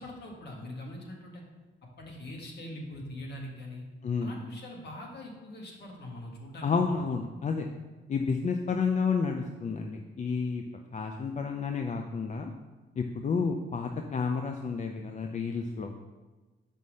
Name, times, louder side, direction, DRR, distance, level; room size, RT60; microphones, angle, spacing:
voice 1, 0.0-1.4 2.0-3.8 4.2-6.7, left 1 dB, 55° left, 0 dB, 1.9 m, -42 dB
voice 2, 4.0-4.4 6.6-7.7 8.1-12.5 13.0-15.9, left 5 dB, 35° left, 4 dB, 0.6 m, -30 dB
5.5 x 5.4 x 6.3 m, 1.2 s
cardioid pair, 90°, 20 cm